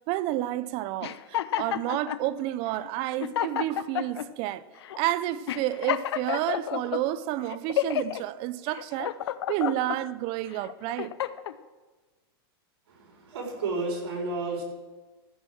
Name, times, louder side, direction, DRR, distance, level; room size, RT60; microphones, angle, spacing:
voice 1, 0.1-4.6 5.0-9.1 9.5-11.1, right 14 dB, 40° right, 0.5 m, -30 dB
sound 1, 1.0-2.2 2.8-2.9 3.2-4.3 4.8-5.0 5.5-7.0 7.5-8.2 8.7-10.0 10.5-11.6, left 11 dB, 90° left, 0.5 m, -30 dB
voice 2, 12.9-14.6, right 3 dB, 85° right, 4.4 m, -32 dB
14.5 x 6.4 x 6.2 m
supercardioid pair, 145°, 13 cm